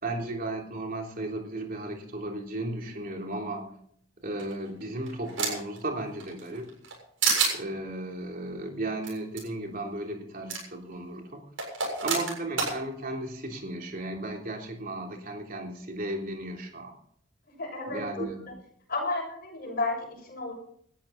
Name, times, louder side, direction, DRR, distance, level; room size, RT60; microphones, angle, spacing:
voice 1, 0.0-3.7 4.2-6.7 7.5-11.4 12.0-16.9 17.9-18.4, right 1 dB, 45° right, 1 dB, 3.4 m, -35 dB
sound 1, 4.4-5.8 6.2-7.0 7.2-7.6 9.0-9.1 9.4-9.5 10.5-10.6 11.6-12.7, right 5 dB, 70° right, 7.3 m, -28 dB
voice 2, 17.6-18.2 18.9-20.5, left 2 dB, 45° left, 1 dB, 6.6 m, -32 dB
19.0 x 13.5 x 4.2 m, 0.64 s
head